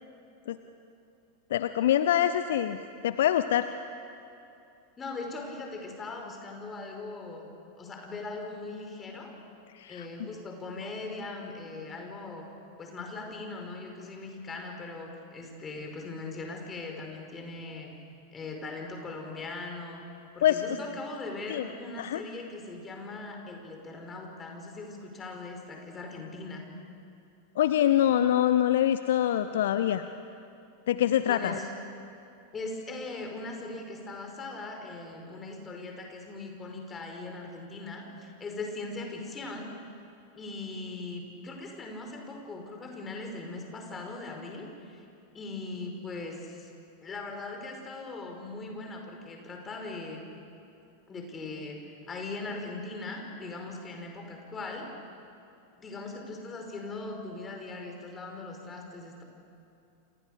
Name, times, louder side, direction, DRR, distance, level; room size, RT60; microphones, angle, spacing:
voice 1, 1.5-2.8 3.0-3.7 9.8-10.1 20.4-20.6 21.5-21.7 22.0-22.2 27.6-30.0 30.9-31.6, left 11 dB, 60° left, 11 dB, 0.8 m, -24 dB
voice 2, 5.0-7.5 7.8-9.3 9.9-12.5 12.8-17.9 18.3-20.0 20.3-26.6 31.3-31.7 32.5-39.7 40.4-45.1 45.3-46.7 47.0-50.2 51.1-51.8 52.1-54.9 55.8-59.2, left 3 dB, 20° left, 3 dB, 5.3 m, -40 dB
29.5 x 27.5 x 6.7 m, 2.7 s
figure-of-eight pair, 90°, 0 cm